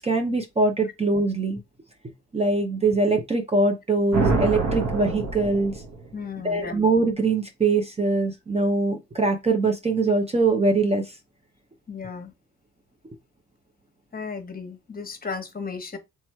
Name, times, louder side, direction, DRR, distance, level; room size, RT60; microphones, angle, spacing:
voice 1, 0.0-1.6 2.3-5.7 6.4-11.1, right 3 dB, 20° right, 0.7 m, -23 dB
sound 1, 4.1-6.2, right 3 dB, 65° right, 1.3 m, -26 dB
voice 2, 6.1-6.9 11.9-12.3 14.1-16.0, left 5 dB, 30° left, 1.2 m, -35 dB
3.4 x 3.0 x 4.4 m
cardioid pair, 90°, 30 cm